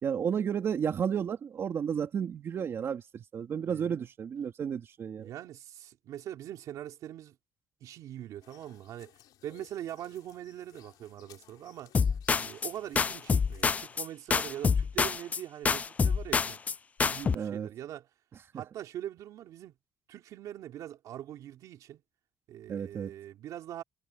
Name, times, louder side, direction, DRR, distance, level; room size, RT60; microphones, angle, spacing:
voice 1, 0.0-5.3 17.3-17.7 18.5-18.6 22.7-23.1, right 7 dB, 40° right, 3.0 m, -32 dB
voice 2, 3.6-4.0 5.2-7.3 7.8-11.9 12.3-16.6 17.0-18.1 18.5-19.7 20.1-22.0 22.5-23.8, right 12 dB, 70° right, 3.1 m, -42 dB
sound 1, 8.4-14.0, left 14 dB, 80° left, 7.1 m, -59 dB
sound 2, 11.9-12.7 13.0-14.1 14.3-15.4 15.6-16.7 17.0-17.4, left 5 dB, 25° left, 0.3 m, -27 dB
cardioid pair, 145°, 6 cm